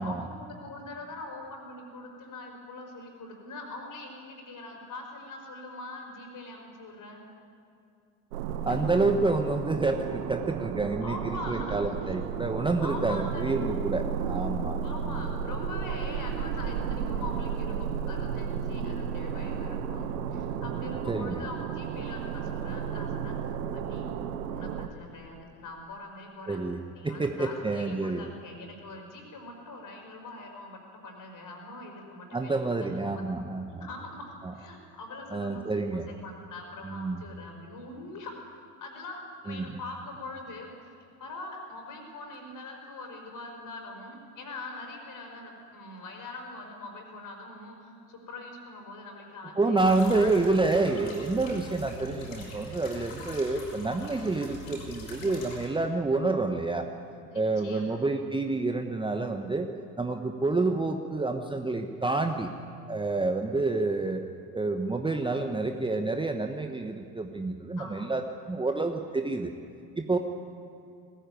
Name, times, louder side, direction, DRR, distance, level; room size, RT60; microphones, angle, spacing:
voice 1, 0.0-7.2 8.6-8.8 11.0-12.2 12.5-13.5 14.8-24.1 24.4-26.6 26.9-33.2 33.7-38.3 38.8-40.7 41.2-50.4 57.3-58.0 67.8-68.1, left 2 dB, 40° left, 2 dB, 5.2 m, -43 dB
sound 1, 8.3-24.9, right 7 dB, 65° right, 1.3 m, -33 dB
voice 2, 8.7-15.3 21.1-21.4 26.5-28.3 32.3-33.9 34.4-34.5 35.3-36.1 36.8-37.2 39.5-39.7 49.6-56.9 57.3-59.7 60.0-62.5 62.9-64.2 64.5-69.5 70.0-70.2, right 3 dB, 10° right, 5 dB, 1.1 m, -28 dB
sound 2, 49.8-55.7, left 1 dB, 65° left, 6.2 m, -43 dB
19.5 x 15.0 x 9.2 m, 2.5 s
figure-of-eight pair, 65°, 48 cm